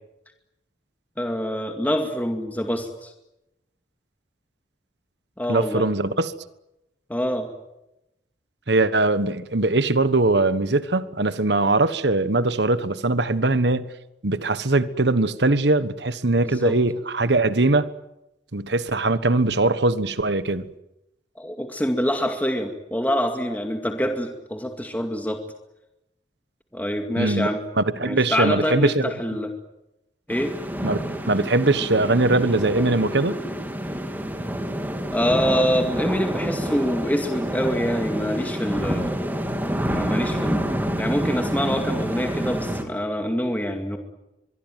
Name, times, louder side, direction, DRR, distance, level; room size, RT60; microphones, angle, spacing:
voice 1, 1.2-3.1 5.4-5.8 7.1-7.5 16.4-16.8 21.4-25.4 26.7-27.6 28.0-29.5 30.3-30.5 35.1-39.3 39.9-44.0, equal, 10° left, 4 dB, 2.2 m, -25 dB
voice 2, 5.5-6.3 8.7-13.8 14.2-17.9 18.5-20.7 27.2-27.5 27.8-29.0 30.8-31.0 31.3-33.4, right 2 dB, 65° right, 13 dB, 1.4 m, -21 dB
sound 1, 30.3-42.8, equal, 10° right, 3.2 m, -28 dB
24.5 x 23.0 x 9.2 m, 0.90 s
head